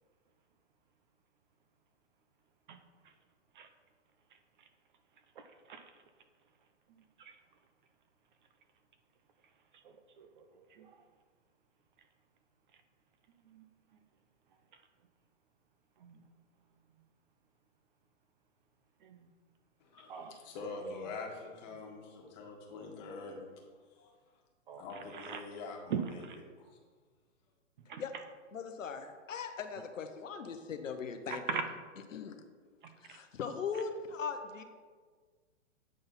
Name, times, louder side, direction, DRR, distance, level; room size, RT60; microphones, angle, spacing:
voice 1, 5.4-5.8 7.2-7.3 10.2-10.9 13.5-13.6 16.0-16.2 19.0-19.3 20.1-20.3 24.7-24.8 25.1-25.4 25.9-26.4 27.9-28.0 31.5-31.6 33.1-33.2, right 7 dB, 40° right, 8 dB, 0.5 m, -40 dB
voice 2, 19.8-23.4 23.9-24.1 24.8-26.8, left 3 dB, 35° left, 0 dB, 1.4 m, -45 dB
voice 3, 28.5-31.6 32.1-32.4 33.0-34.6, left 6 dB, 90° left, 7 dB, 0.8 m, -39 dB
8.5 x 3.9 x 4.0 m, 1.5 s
hypercardioid pair, 140°, 37 cm